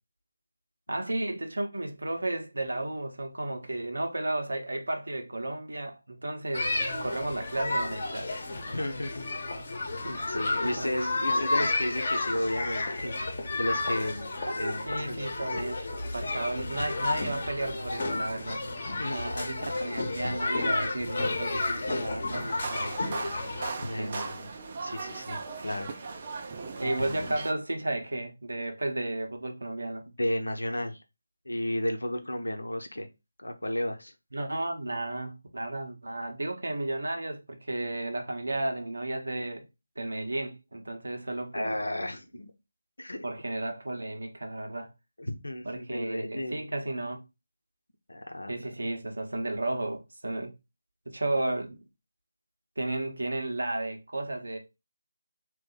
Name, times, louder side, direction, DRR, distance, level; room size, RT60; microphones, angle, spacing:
voice 1, 0.9-6.7 7.0-8.4 10.0-10.4 10.6-11.0 11.3-11.7 14.4-15.8 16.1-18.6 19.1-22.9 24.0-24.3 26.8-30.0 34.3-39.7 40.0-41.8 43.2-44.9 45.6-47.2 48.5-50.5 51.1-51.8 52.8-54.6, right 2 dB, 70° right, 0.9 m, -33 dB
sound 1, 6.5-23.7, left 2 dB, 45° left, 1.0 m, -31 dB
voice 2, 8.7-9.3 10.0-14.3 14.6-15.2 16.4-16.5 18.9-19.3 23.8-24.5 24.8-25.9 26.8-27.3 30.2-31.0 31.5-33.1 33.4-34.1 41.5-42.5 43.0-43.2 45.2-46.7 48.1-48.6, left 1 dB, 80° left, 0.9 m, -33 dB
sound 2, 22.3-27.5, right 4 dB, 35° right, 0.5 m, -38 dB
3.6 x 2.6 x 4.0 m
figure-of-eight pair, 155°, 0 cm